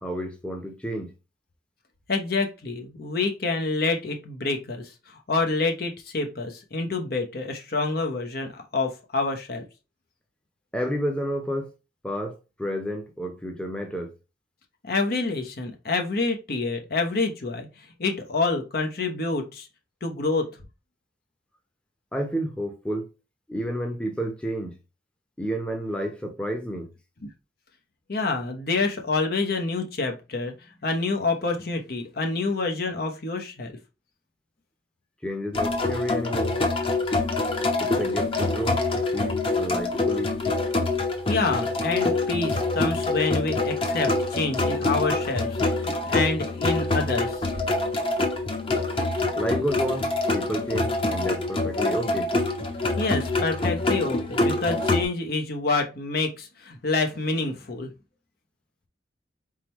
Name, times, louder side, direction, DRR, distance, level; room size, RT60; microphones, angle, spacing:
voice 1, 0.0-1.1 10.7-11.7 12.0-14.1 22.1-23.1 23.5-24.8 25.4-26.9 35.2-36.6 37.8-38.8 39.1-40.3 49.2-52.3, equal, 5° left, 0.8 m, -30 dB
voice 2, 2.1-4.8 5.3-9.6 14.8-17.7 18.0-19.7 20.0-20.5 28.1-30.5 30.8-33.7 41.3-47.4 53.0-57.9, left 3 dB, 60° left, 0.9 m, -27 dB
sound 1, 35.5-55.0, left 2 dB, 30° left, 1.0 m, -25 dB
4.4 x 3.7 x 3.0 m
head